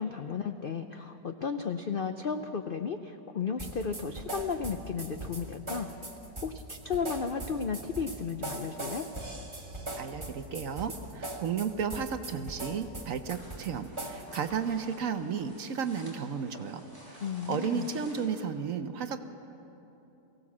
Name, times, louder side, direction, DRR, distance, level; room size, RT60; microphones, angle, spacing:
voice 1, 0.0-5.9 6.4-9.1 17.2-17.9, left 6 dB, 70° left, 7 dB, 0.5 m, -34 dB
sound 1, 3.6-14.6, right 2 dB, 15° right, 1.7 m, -40 dB
voice 2, 10.0-16.8 17.1-19.3, right 6 dB, 60° right, 9 dB, 1.1 m, -33 dB
sound 2, 13.3-18.4, equal, 10° left, 4.5 m, -52 dB
23.0 x 16.5 x 7.3 m, 3.0 s
omnidirectional pair, 1.8 m